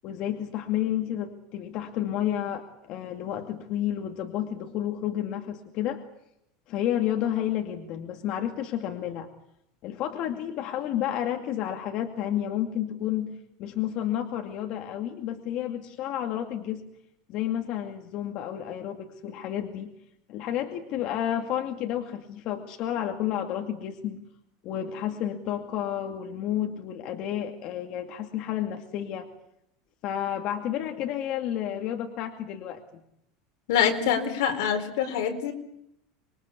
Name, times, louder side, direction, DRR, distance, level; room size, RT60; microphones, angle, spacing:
voice 1, 0.0-6.0 6.7-9.3 9.8-13.3 13.6-16.8 17.3-19.9 20.3-24.2 24.6-29.3 30.0-33.0, left 11 dB, 45° left, 4 dB, 2.3 m, -31 dB
voice 2, 33.7-35.5, left 8 dB, 75° left, 6 dB, 4.3 m, -25 dB
26.5 x 22.5 x 8.4 m, 0.79 s
supercardioid pair, 160°, 2 cm